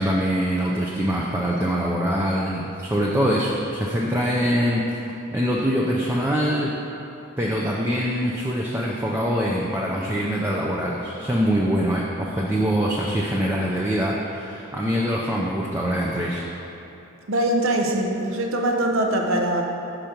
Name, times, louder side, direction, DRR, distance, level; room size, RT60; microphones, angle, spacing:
voice 1, 0.0-4.8 5.3-6.7 7.4-16.4, equal, 10° right, -4 dB, 0.4 m, -24 dB
voice 2, 17.3-19.6, right 1 dB, 70° right, 2 dB, 0.7 m, -22 dB
6.4 x 5.1 x 4.4 m, 2.9 s
head